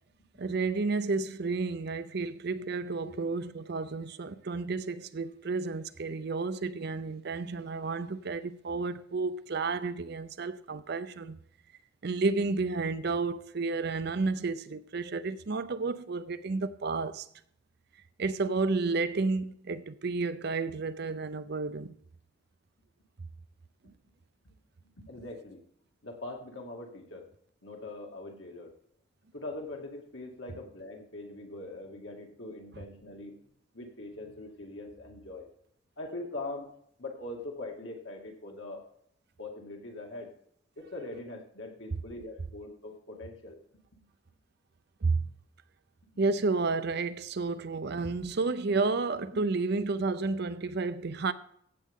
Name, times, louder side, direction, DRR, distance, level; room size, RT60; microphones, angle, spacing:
voice 1, 0.4-11.4 12.0-17.3 18.2-21.9 45.0-45.2 46.2-51.3, right 3 dB, 55° right, 0.6 m, -31 dB
voice 2, 24.4-25.6 26.0-27.3 27.6-28.7 29.3-33.3 33.7-35.5 36.0-36.7 37.0-38.8 39.4-40.3 40.8-43.6 43.9-44.0 49.3-49.4, left 2 dB, 65° left, 2.3 m, -42 dB
15.0 x 7.7 x 3.7 m
head